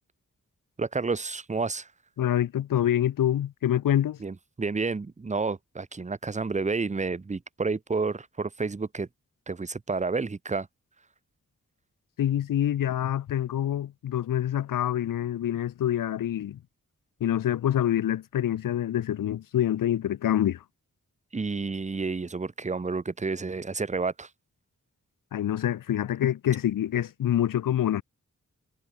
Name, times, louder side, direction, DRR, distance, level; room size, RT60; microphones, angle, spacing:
voice 1, 0.8-1.9 4.2-9.1 9.5-10.7 21.3-24.3, right 4 dB, 20° right, 0.6 m, -30 dB
voice 2, 2.2-4.2 12.2-16.6 17.2-20.6 25.3-28.0, left 11 dB, 85° left, 0.5 m, -26 dB
wide cardioid pair, 125°, 32 cm